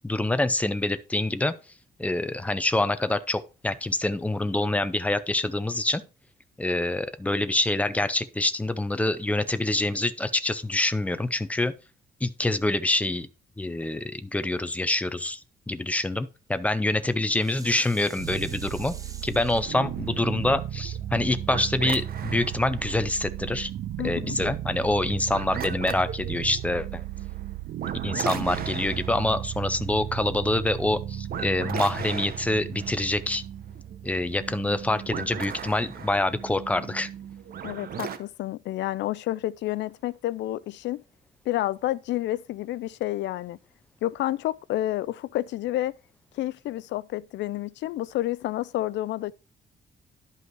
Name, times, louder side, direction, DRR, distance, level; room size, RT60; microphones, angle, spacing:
voice 1, 0.0-1.5 2.0-6.0 6.6-11.7 12.2-13.3 13.6-15.4 15.7-18.9 19.2-23.7 24.0-27.0 28.0-33.4 34.0-37.1, left 2 dB, 10° left, 0.6 m, -26 dB
Dishes pots and pans, 17.0-22.1 22.6-22.7, right 3 dB, 20° right, 0.9 m, -47 dB
sound 1, 18.1-37.2, right 11 dB, 75° right, 0.6 m, -36 dB
sound 2, 19.5-38.2, right 8 dB, 55° right, 1.1 m, -39 dB
voice 2, 24.0-24.4 37.6-41.0 41.5-43.6 44.0-46.0 46.3-49.3, left 15 dB, 90° left, 0.5 m, -29 dB
11.5 x 5.5 x 4.6 m
cardioid pair, 160°, 18 cm